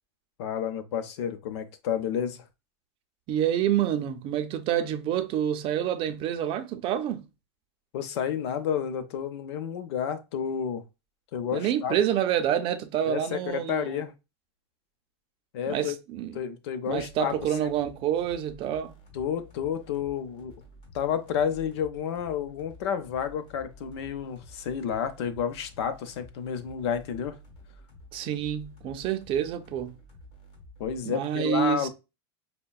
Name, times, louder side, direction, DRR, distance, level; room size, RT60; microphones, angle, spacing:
voice 1, 0.4-2.4 7.9-10.8 11.3-12.0 13.1-14.1 15.5-16.0 16.3-17.7 19.1-20.5 20.9-27.4 30.8-31.9, left 8 dB, 80° left, 0.7 m, -30 dB
voice 2, 3.3-7.3 11.5-14.0 15.7-16.4 16.9-19.0 28.1-30.0 31.1-31.9, right 10 dB, 40° right, 0.5 m, -28 dB
sound 1, 16.9-31.0, left 1 dB, 45° left, 1.7 m, -51 dB
5.4 x 2.2 x 2.3 m
supercardioid pair, 140°, 14 cm